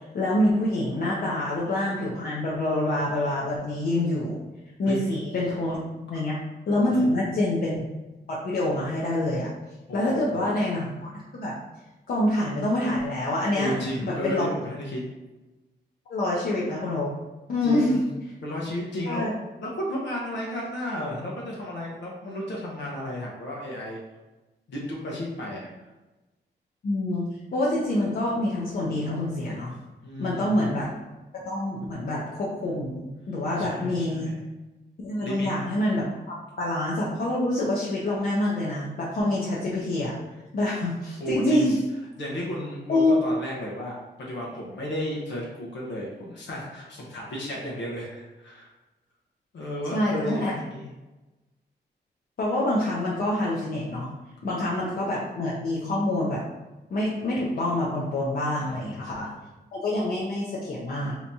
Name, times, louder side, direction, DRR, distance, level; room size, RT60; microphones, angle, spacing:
voice 1, 0.1-4.4 4.8-6.3 6.7-7.9 8.3-9.5 9.9-11.5 12.1-14.5 16.1-17.1 17.5-18.0 19.1-19.3 26.8-27.2 27.5-29.7 30.2-30.9 31.5-34.3 35.0-40.1 40.5-41.8 42.9-43.2 49.9-50.5 52.4-54.1 54.4-56.4 56.9-59.3 59.7-61.2, left 1 dB, 55° left, -6 dB, 0.5 m, -26 dB
voice 2, 9.9-10.4 13.6-15.0 17.6-18.1 18.4-19.3 19.6-24.0 24.7-25.7 30.0-30.6 33.6-34.3 35.2-35.5 41.2-41.7 42.2-48.7 49.5-50.9 58.6-59.4, equal, 90° left, -3 dB, 0.8 m, -33 dB
3.4 x 2.8 x 2.7 m, 1.1 s
wide cardioid pair, 175°, 18 cm